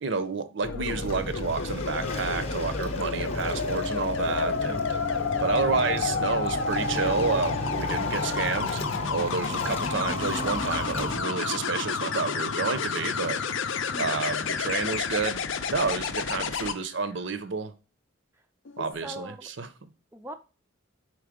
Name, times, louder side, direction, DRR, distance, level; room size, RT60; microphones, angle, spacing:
voice 1, 0.0-5.0 5.4-8.8 9.1-13.4 14.0-15.4 15.7-17.7 18.8-19.7, right 4 dB, 60° right, 0.6 m, -30 dB
sound 1, 0.6-16.7 18.7-18.9, left 5 dB, 70° left, 0.5 m, -30 dB
Waves surf, 0.9-11.2, equal, 30° left, 0.7 m, -35 dB
sound 2, 1.9-3.3 4.2-11.9, left 3 dB, 85° left, 0.9 m, -40 dB
voice 2, 13.9-14.4 19.0-19.5 20.1-20.3, right 1 dB, 10° right, 0.3 m, -43 dB
4.6 x 4.4 x 4.9 m
head